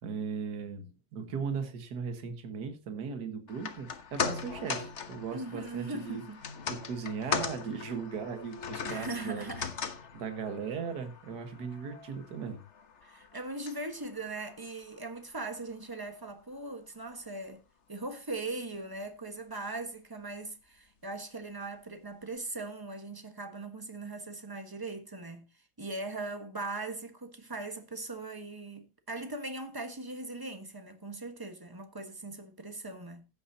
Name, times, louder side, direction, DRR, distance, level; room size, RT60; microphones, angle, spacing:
voice 1, 0.0-6.2 6.7-9.5 10.1-12.6, right 6 dB, 50° right, 2.0 m, -37 dB
sound 1, 3.5-15.9 16.2-16.3, left 6 dB, 45° left, 1.0 m, -39 dB
voice 2, 5.3-6.4 8.8-9.7 13.0-17.6 17.9-25.5 25.8-33.3, right 2 dB, 15° right, 1.0 m, -40 dB
15.5 x 8.7 x 2.8 m
omnidirectional pair, 2.3 m